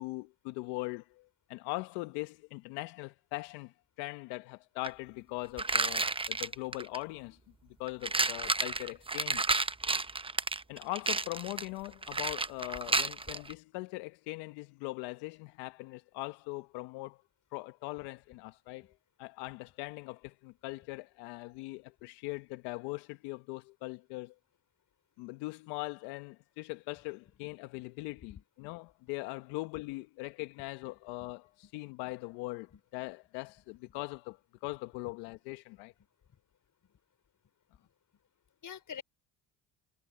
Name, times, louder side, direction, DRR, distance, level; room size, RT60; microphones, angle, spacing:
voice 1, 0.0-7.4 7.8-9.4 10.7-17.2 17.5-18.9 19.2-24.3 25.2-35.9, left 23 dB, 80° left, 1.2 m, -41 dB
sound 1, 4.8-4.9 5.6-7.0 7.9-13.5, right 3 dB, 15° right, 0.9 m, -31 dB
voice 2, 38.6-39.0, left 8 dB, 50° left, 5.0 m, -47 dB
hypercardioid pair, 65°, 41 cm